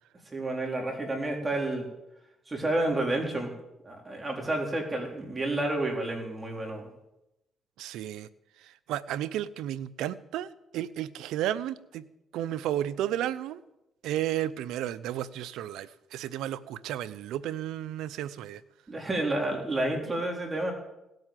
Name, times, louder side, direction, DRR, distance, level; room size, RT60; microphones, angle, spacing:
voice 1, 0.3-1.9 2.5-3.5 3.8-6.9 18.9-20.7, right 2 dB, 25° right, 1 dB, 4.2 m, -30 dB
voice 2, 7.8-8.3 8.6-12.0 12.3-13.6 14.0-18.6, right 12 dB, 85° right, 17 dB, 0.7 m, -33 dB
18.0 x 8.0 x 9.1 m, 0.90 s
cardioid pair, 75°, 0 cm